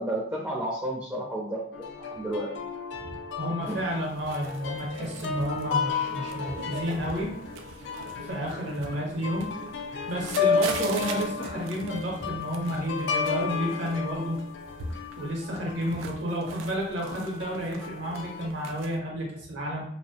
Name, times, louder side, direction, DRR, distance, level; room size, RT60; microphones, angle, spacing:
voice 1, 0.0-2.5 3.7-3.8, right 1 dB, 10° right, -4 dB, 0.4 m, -32 dB
sound 1, 1.7-16.1 17.0-18.5, left 5 dB, 65° left, 0.3 m, -33 dB
voice 2, 3.0-7.3 8.0-9.5 10.1-14.4 15.2-19.8, equal, 75° right, -1 dB, 0.7 m, -31 dB
sound 2, 3.8-19.0, right 4 dB, 90° right, 0.3 m, -43 dB
2.7 x 2.0 x 2.7 m, 0.63 s
head